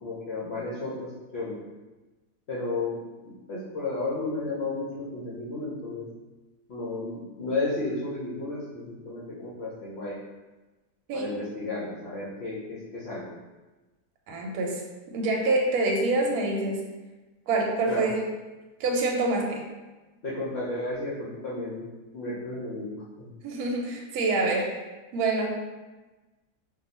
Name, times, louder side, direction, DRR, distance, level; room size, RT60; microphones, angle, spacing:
voice 1, 0.0-1.6 2.5-6.1 6.7-10.1 11.1-13.3 17.9-18.1 20.2-21.9 22.1-23.3, left 2 dB, 65° left, -8 dB, 0.6 m, -33 dB
voice 2, 14.3-14.8 15.1-16.8 17.5-18.2 18.8-19.6 23.4-24.8 25.1-25.5, right 2 dB, 70° right, 0 dB, 1.0 m, -26 dB
2.6 x 2.3 x 4.0 m, 1.2 s
omnidirectional pair, 1.8 m